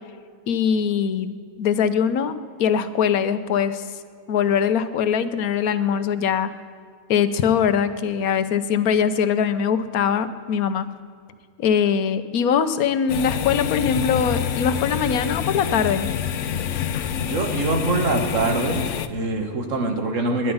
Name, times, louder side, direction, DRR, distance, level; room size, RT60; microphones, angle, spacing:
voice 1, 0.5-2.3 2.6-3.9 4.3-6.5 7.1-10.9 11.6-16.1, left 7 dB, 85° left, 12 dB, 1.3 m, -22 dB
sound 1, 13.1-19.1, left 8 dB, 65° left, 1.0 m, -26 dB
voice 2, 17.2-18.8 19.1-20.5, right 3 dB, 60° right, 5 dB, 1.8 m, -24 dB
20.0 x 11.0 x 5.5 m, 2.1 s
omnidirectional pair, 1.5 m